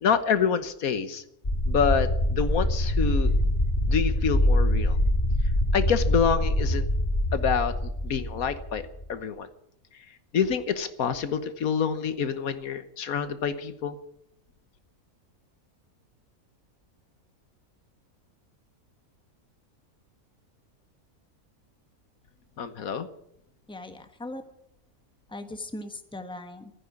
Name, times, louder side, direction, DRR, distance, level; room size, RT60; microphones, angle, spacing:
voice 1, 0.0-1.2 1.7-3.3 3.9-5.0 5.7-6.9 7.3-8.8 9.1-9.5 10.3-14.0 22.6-23.1, left 6 dB, 75° left, 11 dB, 1.5 m, -27 dB
sound 1, 1.4-9.0, left 1 dB, 35° left, 2.5 m, -24 dB
voice 2, 23.7-24.4 25.3-26.7, left 2 dB, 5° left, 7 dB, 1.2 m, -39 dB
15.0 x 9.8 x 9.7 m, 0.75 s
omnidirectional pair, 1.5 m